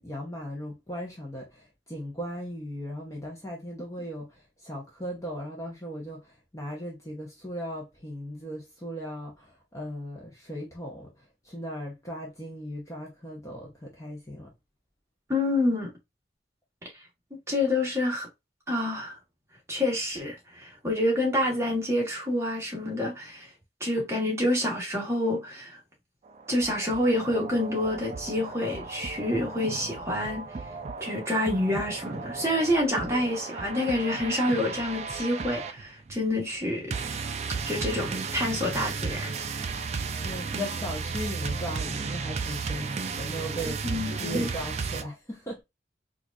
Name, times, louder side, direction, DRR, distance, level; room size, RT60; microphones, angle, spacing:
voice 1, 0.0-14.5 40.2-43.9 44.2-45.6, equal, 15° left, 0.8 m, -37 dB
voice 2, 15.3-15.9 16.8-16.9 17.5-18.3 18.7-19.2 19.7-23.5 23.8-25.8 26.5-30.5 31.0-36.9 37.7-39.3 43.8-44.5, left 1 dB, 15° right, 1.3 m, -27 dB
sound 1, 26.3-45.0, right 4 dB, 35° right, 0.3 m, -34 dB
4.5 x 2.5 x 2.4 m
head